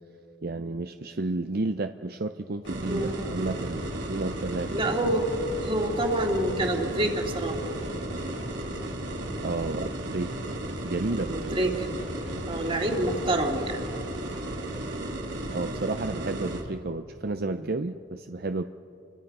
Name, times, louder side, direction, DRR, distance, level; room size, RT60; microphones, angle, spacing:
voice 1, 0.4-5.1 9.4-10.4 10.8-11.6 15.5-18.6, right 2 dB, 55° right, 8 dB, 0.6 m, -32 dB
sound 1, 2.6-12.6 12.9-14.7, equal, 80° left, 6.3 m, -44 dB
sound 2, 2.6-16.6, right 1 dB, 80° right, 3.3 m, -34 dB
voice 2, 2.9-3.2 4.7-5.2 5.6-7.6 11.3-11.9 12.5-13.8 17.4-17.6, right 1 dB, 30° right, 2 dB, 2.6 m, -27 dB
30.0 x 24.0 x 5.5 m, 2.6 s
head